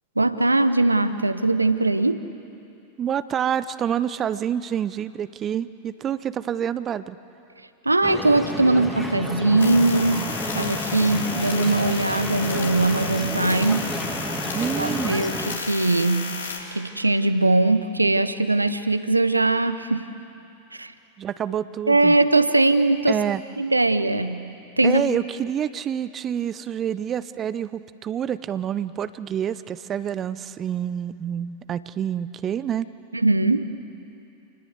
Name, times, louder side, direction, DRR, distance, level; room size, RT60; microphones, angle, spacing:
voice 1, 0.2-2.3 7.8-14.0 14.8-16.4 16.7-20.1 20.7-20.9 21.9-23.2 23.6-24.5 24.8-25.0 33.1-33.7, right 2 dB, 85° right, 12 dB, 0.9 m, -21 dB
voice 2, 3.0-7.2 14.5-15.2 21.2-22.2 23.1-23.4 24.8-32.9, right 9 dB, 25° right, 16 dB, 0.7 m, -27 dB
sound 1, 8.0-15.6, equal, ahead, 2.4 m, -31 dB
sound 2, 9.6-16.6, left 4 dB, 70° left, 3.4 m, -33 dB
28.0 x 20.0 x 8.1 m, 2.8 s
figure-of-eight pair, 90°, 0 cm